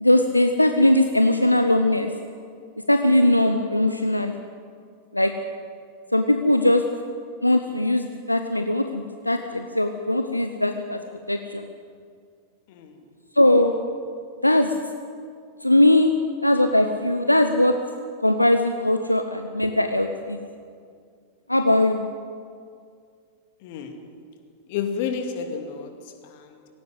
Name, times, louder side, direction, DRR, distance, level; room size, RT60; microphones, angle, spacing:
voice 1, 0.0-2.1 2.9-4.4 5.1-5.3 6.1-6.8 7.4-11.0 11.3-11.7 13.4-13.7 14.4-14.7 15.6-16.1 16.4-17.7 18.2-20.4 21.5-22.0, left 1 dB, 85° left, 7 dB, 0.9 m, -20 dB
voice 2, 23.6-24.0 24.7-25.9 26.2-26.6, left 7 dB, 50° left, 6 dB, 2.5 m, -31 dB
18.5 x 17.5 x 8.1 m, 2.2 s
figure-of-eight pair, 90°, 0 cm